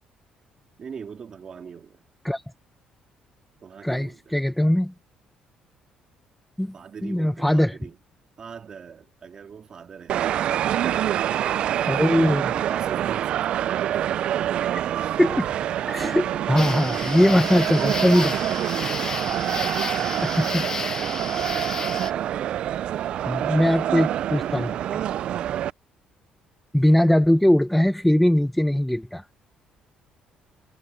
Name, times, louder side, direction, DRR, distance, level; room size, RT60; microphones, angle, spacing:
voice 1, 0.8-2.0 3.6-4.4 6.7-8.0 8.4-10.4 10.9-14.1 14.8-15.2 18.8-19.2, right 6 dB, 35° right, 2.0 m, -42 dB
voice 2, 3.8-4.9 6.6-6.7 7.0-7.8 11.9-12.4 14.7-14.8 15.2-15.5 15.9-18.4 20.2-21.1 23.3-25.0 26.7-29.2, left 1 dB, 5° left, 0.6 m, -21 dB
sound 1, 10.1-25.7, right 11 dB, 55° right, 0.3 m, -26 dB
sound 2, 16.6-22.1, left 5 dB, 30° left, 1.2 m, -32 dB
cardioid pair, 150°, 2 cm